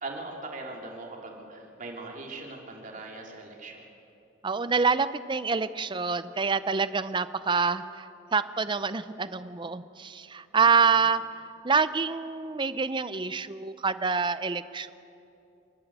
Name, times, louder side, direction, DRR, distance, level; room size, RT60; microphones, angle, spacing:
voice 1, 0.0-3.9 10.6-10.9, right 2 dB, 45° right, 0 dB, 3.2 m, -40 dB
voice 2, 4.4-8.1 8.3-11.2 11.6-14.9, right 5 dB, 25° right, 14 dB, 0.6 m, -26 dB
28.0 x 12.0 x 8.2 m, 2.8 s
head